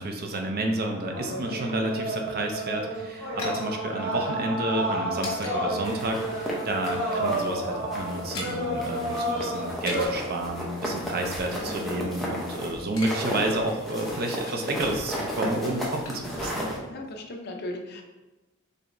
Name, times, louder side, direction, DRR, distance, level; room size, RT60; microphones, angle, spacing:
voice 1, 0.0-16.7, right 1 dB, 45° right, 3 dB, 0.6 m, -30 dB
sound 1, 0.9-10.1, right 1 dB, 65° right, 1.5 m, -31 dB
sound 2, 2.6-5.6 5.9-6.0 6.4-7.1 7.3-7.5 7.8-8.6 9.6-10.3 11.0-12.5 12.7-13.2 13.5-13.6 14.0-14.8 15.5-16.8 17.0-17.1, left 2 dB, 75° left, 1.1 m, -41 dB
sound 3, 5.8-7.6 7.9-8.5 8.8-16.8, equal, ahead, 0.8 m, -34 dB
voice 2, 11.6-12.0 16.8-18.0, left 1 dB, 50° left, 3 dB, 0.6 m, -37 dB
4.6 x 3.3 x 2.6 m, 1.1 s
head